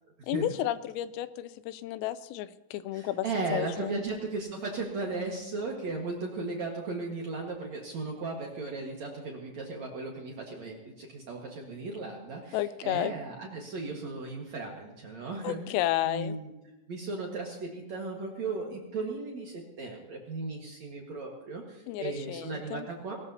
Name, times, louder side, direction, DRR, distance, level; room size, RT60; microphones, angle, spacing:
voice 1, 0.3-4.0 12.5-13.1 15.4-16.4 21.9-22.9, left 13 dB, 85° left, 14 dB, 3.3 m, -32 dB
voice 2, 2.9-15.8 16.0-16.5 16.9-23.2, right 3 dB, 70° right, -1 dB, 1.6 m, -36 dB
20.5 x 18.5 x 2.8 m, 1.1 s
omnidirectional pair, 5.9 m